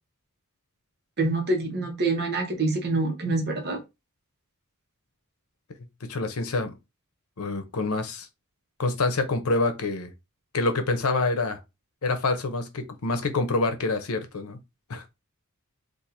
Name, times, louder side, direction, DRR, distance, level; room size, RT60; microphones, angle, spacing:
voice 1, 1.2-3.8, right 2 dB, 50° right, 1.1 m, -26 dB
voice 2, 6.1-6.7 7.4-8.3 8.8-10.1 10.5-11.6 12.0-14.6 14.9-15.0, left 3 dB, 90° left, 0.7 m, -26 dB
4.2 x 2.6 x 2.6 m
head